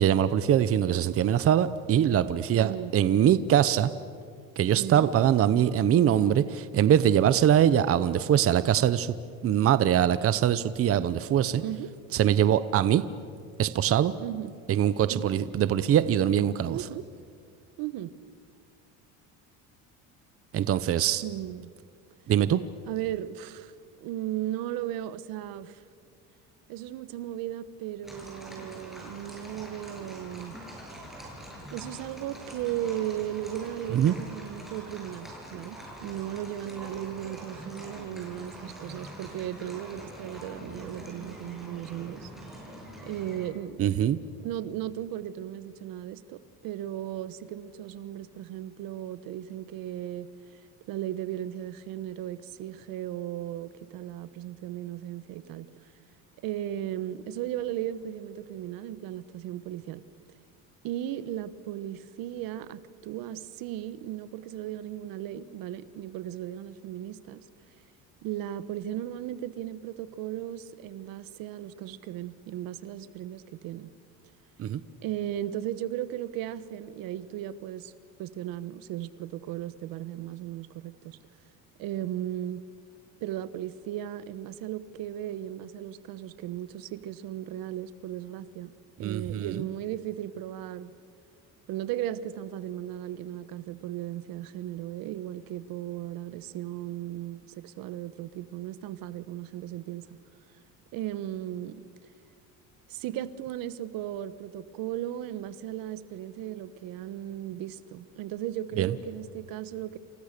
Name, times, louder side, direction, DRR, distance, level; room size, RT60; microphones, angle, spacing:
voice 1, 0.0-3.9 4.6-9.1 9.4-11.6 12.1-13.0 13.6-14.1 14.7-16.8 20.5-21.2 22.3-22.6 33.9-34.1 43.8-44.2 74.6-74.8 89.0-89.6 108.8-108.9, right 10 dB, 40° right, 14 dB, 0.9 m, -23 dB
voice 2, 2.5-2.9 4.7-5.1 11.6-11.9 14.2-14.5 15.0-15.3 16.7-17.1 17.8-18.1 21.2-21.7 22.9-23.7 24.0-25.8 26.7-30.5 31.7-42.3 43.0-43.9 44.4-50.3 50.9-55.7 56.4-60.0 60.8-67.5 68.2-73.9 75.0-77.9 78.2-81.2 81.8-82.6 83.2-88.7 89.0-90.9 91.7-100.1 100.9-101.8 102.9-110.0, right 12 dB, 70° right, 14 dB, 1.2 m, -36 dB
sound 1, 28.0-43.5, right 1 dB, ahead, 7.7 m, -44 dB
29.5 x 28.5 x 6.8 m, 2.1 s
cardioid pair, 130°, 35 cm